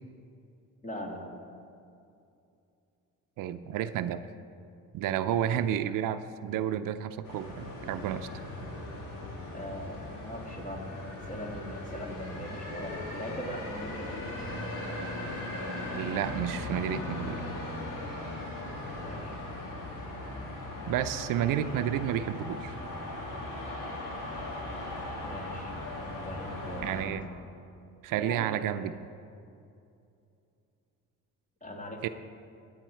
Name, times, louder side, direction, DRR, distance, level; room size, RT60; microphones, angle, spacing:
voice 1, 0.8-1.4 9.5-14.5 19.0-19.4 25.2-27.3 28.1-28.6 31.6-32.1, equal, 20° left, 0 dB, 2.1 m, -41 dB
voice 2, 3.4-4.2 4.9-8.3 15.9-17.4 20.9-22.8 26.8-27.3 28.0-28.9 32.0-32.1, right 10 dB, 75° right, 12 dB, 0.6 m, -31 dB
sound 1, 7.2-27.0, left 1 dB, 75° left, 3.4 m, -38 dB
15.5 x 9.5 x 4.5 m, 2.6 s
cardioid pair, 120°, 33 cm